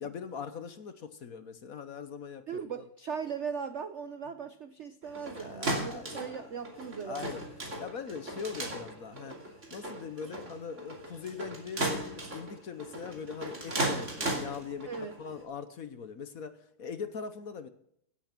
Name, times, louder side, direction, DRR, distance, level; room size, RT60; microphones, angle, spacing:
voice 1, 0.0-2.8 5.1-6.2 7.1-7.4 7.8-14.9 15.2-17.7, left 6 dB, 55° left, 11 dB, 1.2 m, -41 dB
voice 2, 2.5-7.4 14.9-15.1, right 6 dB, 85° right, 10 dB, 0.6 m, -38 dB
sound 1, 5.0-15.4, right 1 dB, 35° right, 3.0 m, -37 dB
17.0 x 8.7 x 6.0 m, 0.69 s
omnidirectional pair, 2.3 m